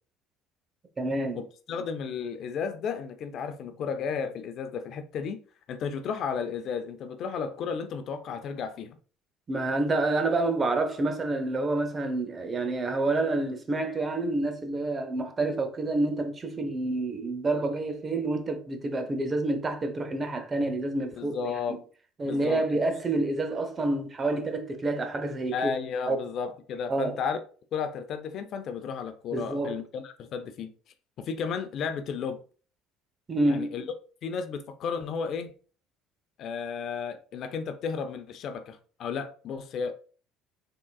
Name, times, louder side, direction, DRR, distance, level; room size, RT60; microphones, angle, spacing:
voice 1, 1.0-1.4 9.5-21.5 22.2-25.7 26.1-26.2 26.9-27.2 29.3-29.8 33.3-33.7, right 2 dB, 30° right, 0.9 m, -28 dB
voice 2, 1.7-5.4 5.7-9.0 21.2-21.8 22.2-22.8 25.5-27.4 27.7-30.7 31.2-32.4 33.5-33.8 34.2-35.5 36.4-39.9, left 6 dB, 55° left, 0.5 m, -33 dB
3.8 x 3.7 x 2.3 m
hypercardioid pair, 75°, 0 cm